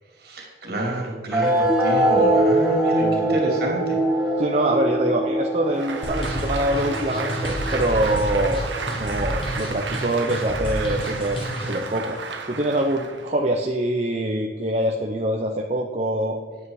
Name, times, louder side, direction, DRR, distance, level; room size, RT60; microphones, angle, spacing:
voice 1, 0.2-4.0, right 1 dB, 55° right, 0 dB, 2.8 m, -29 dB
sound 1, 1.3-8.3, right 1 dB, ahead, 1.6 m, -22 dB
voice 2, 3.0-3.4 4.4-8.7 9.0-12.2 12.5-16.4, right 1 dB, 35° right, 1 dB, 0.7 m, -24 dB
Applause, 5.6-13.4, right 4 dB, 75° right, 1.1 m, -33 dB
sound 2, 6.0-11.9, equal, 30° left, 1.9 m, -30 dB
9.9 x 8.7 x 4.8 m, 1.5 s
head